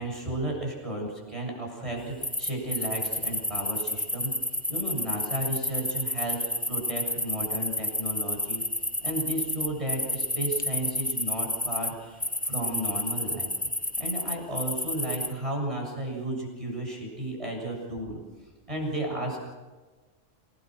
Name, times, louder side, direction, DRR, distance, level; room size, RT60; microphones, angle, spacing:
voice 1, 0.0-4.3 4.7-8.6 9.0-13.5 14.0-18.2 18.7-19.5, right 1 dB, 25° right, -1 dB, 7.4 m, -33 dB
sound 1, 2.2-11.9 12.2-15.3, left 1 dB, 10° left, 0.8 m, -30 dB
28.0 x 20.0 x 6.3 m, 1.3 s
omnidirectional pair, 1.3 m